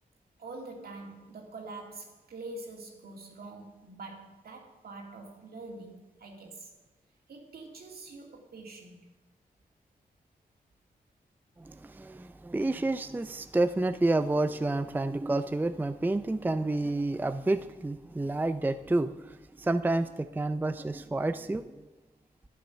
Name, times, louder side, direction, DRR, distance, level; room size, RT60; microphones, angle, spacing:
voice 1, 0.4-6.7 7.3-9.1, right 2 dB, 70° right, 1 dB, 2.3 m, -45 dB
voice 2, 11.6-21.9, right 2 dB, 10° right, 11 dB, 0.4 m, -29 dB
11.5 x 8.6 x 5.7 m, 1.2 s
cardioid pair, 75°, 16 cm